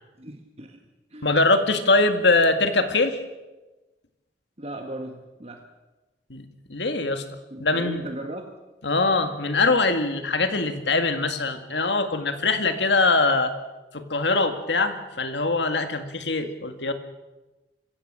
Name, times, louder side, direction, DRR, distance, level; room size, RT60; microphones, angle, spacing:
voice 1, 0.2-0.8 1.1-1.3 4.6-5.6 7.5-8.5, right 1 dB, 35° right, 4 dB, 1.6 m, -37 dB
voice 2, 1.2-3.2 6.3-7.2 7.6-8.0 8.8-13.5 13.9-16.9, left 3 dB, 75° left, 8 dB, 2.0 m, -22 dB
26.0 x 15.5 x 7.5 m, 1.1 s
head